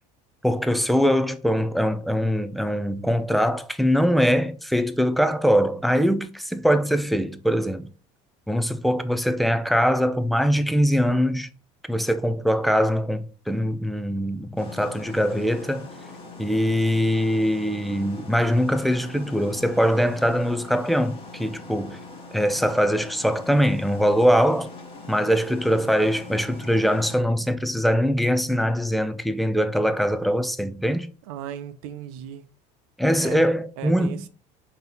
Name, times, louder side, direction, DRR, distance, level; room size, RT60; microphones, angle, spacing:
voice 1, 0.4-7.9 8.5-11.5 11.9-15.9 16.4-22.0 22.3-24.7 25.1-31.1 33.0-34.2, equal, ahead, 0.3 m, -22 dB
sound 1, 14.6-27.2, left 3 dB, 30° left, 1.2 m, -42 dB
voice 2, 31.2-32.5 33.2-33.5 33.8-34.3, right 9 dB, 80° right, 0.6 m, -36 dB
3.8 x 2.9 x 4.0 m
supercardioid pair, 115°, 17 cm